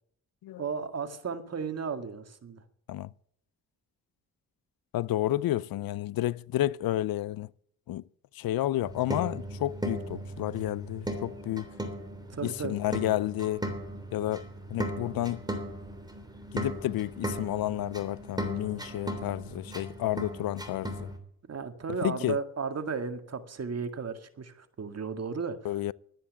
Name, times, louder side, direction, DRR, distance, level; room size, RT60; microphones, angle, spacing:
voice 1, 0.6-2.6 12.3-12.8 21.5-25.7, right 5 dB, 45° right, 1.9 m, -34 dB
voice 2, 4.9-7.5 7.9-8.0 8.3-11.7 12.4-13.6 14.1-15.4 16.5-21.1 22.0-22.4 25.6-25.9, left 14 dB, 80° left, 0.6 m, -31 dB
sound 1, 8.8-21.2, right 1 dB, 10° right, 3.3 m, -37 dB
12.0 x 10.0 x 8.3 m
cardioid pair, 85°, 35 cm